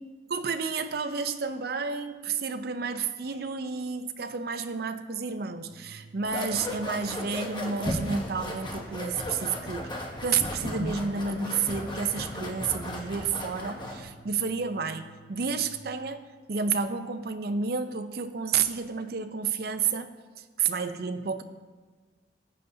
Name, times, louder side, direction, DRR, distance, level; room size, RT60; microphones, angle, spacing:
voice 1, 0.3-9.9 10.2-20.1 20.4-21.4, right 5 dB, 55° right, 9 dB, 0.6 m, -30 dB
Organ, 5.6-15.9, right 4 dB, 65° left, 1.7 m, -53 dB
sound 1, 6.3-14.1, equal, 25° left, 1.1 m, -35 dB
14.0 x 9.3 x 2.7 m, 1.4 s
head